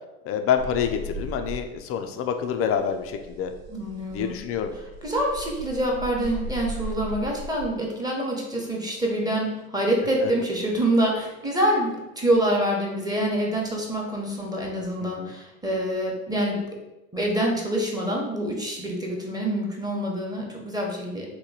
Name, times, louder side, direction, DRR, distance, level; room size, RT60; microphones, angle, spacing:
voice 1, 0.2-3.5 4.1-4.7 10.2-10.3 15.0-15.3, left 8 dB, 35° left, 6 dB, 0.4 m, -27 dB
sound 1, 0.6-2.0 2.3-7.7 9.4-9.9, right 1 dB, 75° right, 0.6 m, -37 dB
voice 2, 3.7-4.4 5.0-16.6 17.1-21.3, right 1 dB, 10° right, -1 dB, 0.9 m, -26 dB
2.9 x 2.2 x 3.9 m, 0.98 s
hypercardioid pair, 80°, 41 cm